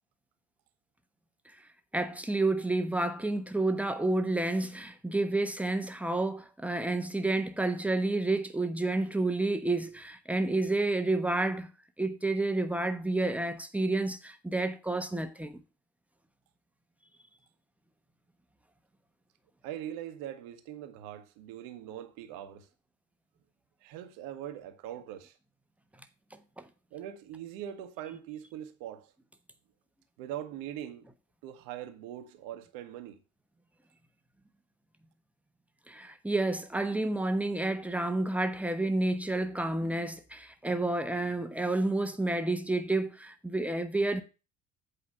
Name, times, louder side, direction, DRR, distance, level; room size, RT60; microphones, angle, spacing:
voice 1, 1.9-11.7 12.0-15.6 26.6-26.7 35.9-44.2, right 2 dB, 5° right, 1.1 m, -30 dB
voice 2, 19.6-22.7 23.8-25.4 26.9-29.1 30.2-31.0 31.4-33.2, right 11 dB, 55° right, 1.3 m, -42 dB
8.5 x 5.0 x 6.7 m
figure-of-eight pair, 55°, 40 cm